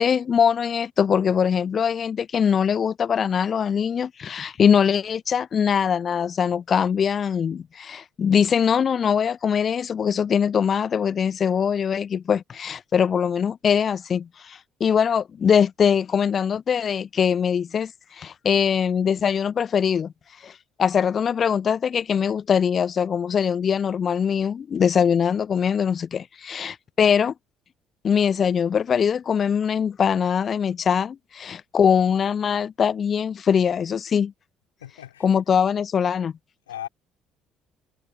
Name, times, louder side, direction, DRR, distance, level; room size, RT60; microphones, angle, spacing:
voice 1, 0.0-20.1 20.4-20.5 20.8-27.3 28.0-34.3 35.2-36.3, left 7 dB, 40° left, 1.0 m, -22 dB
voice 2, 34.8-35.4 36.7-36.9, left 11 dB, 75° left, 4.6 m, -37 dB
figure-of-eight pair, 50°, 0 cm